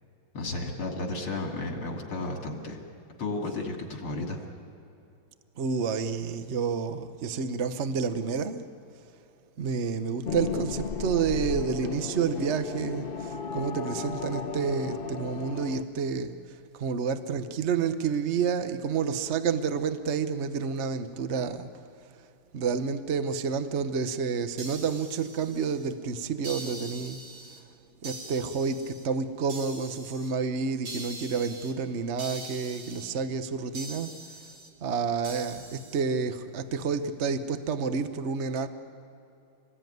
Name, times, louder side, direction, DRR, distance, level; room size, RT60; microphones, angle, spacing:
voice 1, 0.3-2.8 3.2-4.4, left 2 dB, 75° left, 1 dB, 3.6 m, -33 dB
voice 2, 5.6-8.6 9.6-21.8 22.5-27.2 28.0-34.1 34.8-38.7, right 5 dB, 50° right, 9 dB, 0.8 m, -29 dB
sound 1, 10.2-15.8, left 5 dB, 45° left, 0.7 m, -35 dB
sound 2, 24.6-25.9 26.4-27.6 28.0-29.0 29.5-30.3 30.9-31.7 32.2-33.1 33.8-34.7 35.2-36.0, right 2 dB, 70° right, 3.8 m, -43 dB
27.0 x 20.0 x 9.3 m, 2.7 s
omnidirectional pair, 2.4 m